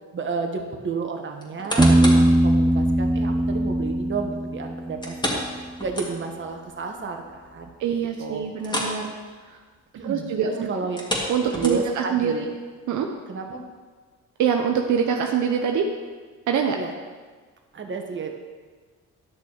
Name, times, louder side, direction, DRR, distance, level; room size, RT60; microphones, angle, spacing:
voice 1, 0.1-7.7 8.2-8.5 9.9-11.0 11.5-12.5 13.3-13.6 16.8-16.9 17.7-18.4, right 4 dB, 40° right, 3 dB, 1.4 m, -32 dB
sound 1, 1.4-2.3 2.8-2.9 5.0-6.5 6.8-6.9 7.4-7.5 8.6-9.0 9.3-9.5 10.8-12.1 12.7-12.8, left 1 dB, 15° left, 2.1 m, -30 dB
Piano, 1.8-5.5, right 1 dB, 10° right, 0.6 m, -20 dB
voice 2, 7.8-9.1 9.5-9.6 10.0-10.7 11.3-12.3 12.9-13.1 14.4-15.9 16.5-16.8, right 7 dB, 75° right, 2 dB, 0.9 m, -24 dB
11.0 x 6.2 x 4.7 m, 1.5 s
cardioid pair, 90°, 30 cm